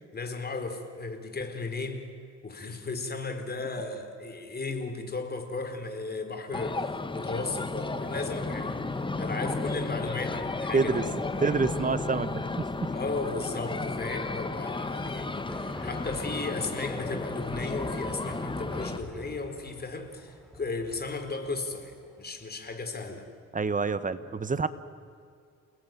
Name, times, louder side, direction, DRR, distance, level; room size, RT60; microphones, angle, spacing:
voice 1, 0.1-2.0 2.4-11.5 12.9-23.3, left 3 dB, 30° left, 6 dB, 4.2 m, -35 dB
sound 1, 6.5-19.0, left 3 dB, 15° left, 1.2 m, -33 dB
voice 2, 10.7-11.0 11.4-12.7 23.5-24.7, right 4 dB, 25° right, 13 dB, 1.4 m, -27 dB
sound 2, 14.9-23.2, equal, ahead, 4.3 m, -46 dB
29.5 x 19.5 x 9.3 m, 2.3 s
cardioid pair, 90°, 30 cm